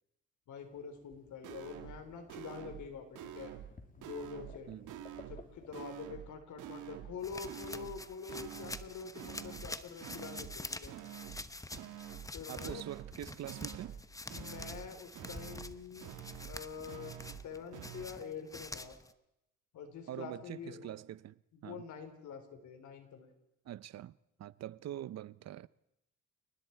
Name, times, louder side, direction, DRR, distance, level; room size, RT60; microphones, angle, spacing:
voice 1, 0.5-3.5 4.0-4.7 5.3-10.9 12.3-12.8 14.3-16.1 16.5-17.2 17.4-19.0 19.7-20.9 21.5-23.3, left 6 dB, 75° left, 3.9 m, -46 dB
sound 1, 0.6-5.8, left 3 dB, 25° left, 2.8 m, -58 dB
sound 2, 1.1-1.2 1.4-2.0 2.3-2.9 3.1-3.7 4.0-4.6 4.9-5.4 5.7-6.3 6.6-7.2 7.4-8.0 8.3-8.9 9.1-9.7 10.0-10.6 10.9-11.4 11.7-12.3 12.6-13.2 13.4-14.0 14.3-14.9 15.1-15.7 16.0-16.6 16.9-17.4 17.7-18.1, right 11 dB, 85° right, 1.9 m, -47 dB
sound 3, 7.2-19.1, left 2 dB, 10° left, 1.0 m, -47 dB
voice 2, 12.5-13.9 20.1-21.8 23.7-24.1 24.4-25.7, right 12 dB, 60° right, 0.7 m, -44 dB
29.5 x 19.5 x 4.6 m
cardioid pair, 90°, 30 cm